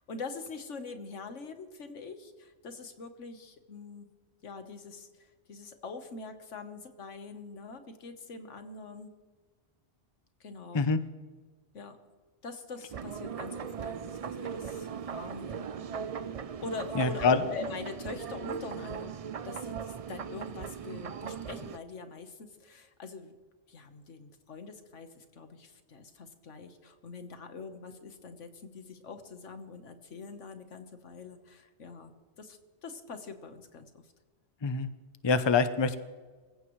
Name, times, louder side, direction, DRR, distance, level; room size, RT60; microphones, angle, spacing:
voice 1, 0.0-4.1 4.4-9.1 10.4-10.8 11.7-12.0 12.4-16.1 16.6-19.1 19.4-23.3 23.7-32.1 32.4-34.0, left 4 dB, 90° left, 7 dB, 1.6 m, -44 dB
sound 1, 12.9-21.8, right 7 dB, 55° right, 0.4 m, -38 dB
voice 2, 16.9-17.4 34.6-34.9 35.2-36.0, left 4 dB, 30° left, 11 dB, 0.6 m, -25 dB
25.5 x 15.5 x 3.2 m, 1.4 s
omnidirectional pair, 1.2 m